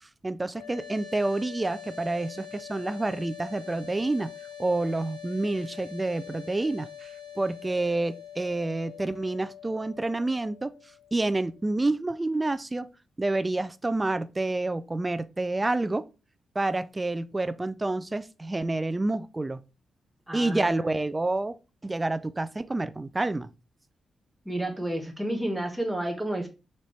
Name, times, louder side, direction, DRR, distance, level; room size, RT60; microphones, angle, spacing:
voice 1, 0.2-4.3 4.6-7.1 7.4-10.7 11.1-12.9 13.2-16.0 16.6-19.6 20.3-21.5 21.8-23.5, right 2 dB, 25° right, 0.4 m, -28 dB
sound 1, 0.5-11.6, left 8 dB, 85° left, 1.3 m, -44 dB
voice 2, 20.3-20.8 24.5-26.5, right 1 dB, 5° right, 1.1 m, -31 dB
4.3 x 3.0 x 3.1 m
supercardioid pair, 50°, 0 cm